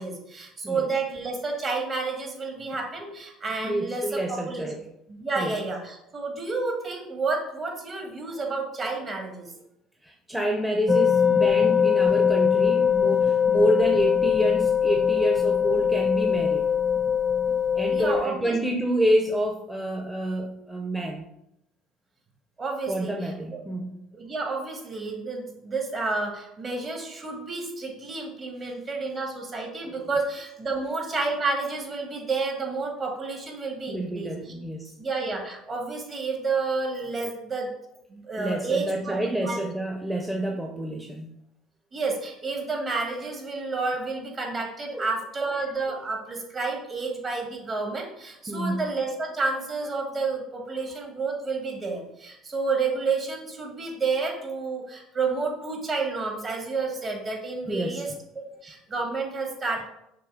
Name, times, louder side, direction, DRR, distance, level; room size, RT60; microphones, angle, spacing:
voice 1, 0.0-4.7 5.1-9.5 17.9-18.5 22.6-23.3 24.1-34.5 35.0-37.7 38.1-39.6 41.9-59.9, right 3 dB, 40° right, 0 dB, 2.2 m, -30 dB
voice 2, 3.6-4.8 5.4-5.5 10.0-16.7 17.7-21.3 22.9-24.0 29.8-30.1 33.9-34.9 38.4-41.3 44.9-45.1 48.5-48.9 57.7-58.0, right 1 dB, 5° right, 1 dB, 0.8 m, -28 dB
sound 1, 10.9-18.2, left 7 dB, 20° left, 0.3 m, -22 dB
6.0 x 3.3 x 5.1 m, 0.81 s
supercardioid pair, 85°, 0 cm